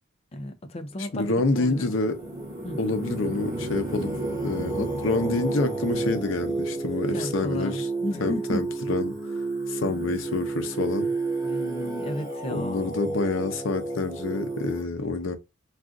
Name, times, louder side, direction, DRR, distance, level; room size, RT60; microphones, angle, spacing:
voice 1, 0.3-1.9 2.6-2.8 7.1-8.6 9.9-10.1 11.4-12.9, left 1 dB, 30° left, 0.4 m, -33 dB
voice 2, 1.0-2.2 2.8-4.1 4.4-7.8 8.2-9.1 9.7-11.1 12.5-15.4, left 3 dB, 85° left, 0.6 m, -27 dB
Singing, 1.0-14.8, right 3 dB, 20° right, 1.0 m, -32 dB
sound 1, 2.1-7.1, right 1 dB, 50° right, 0.4 m, -36 dB
2.4 x 2.4 x 3.6 m
head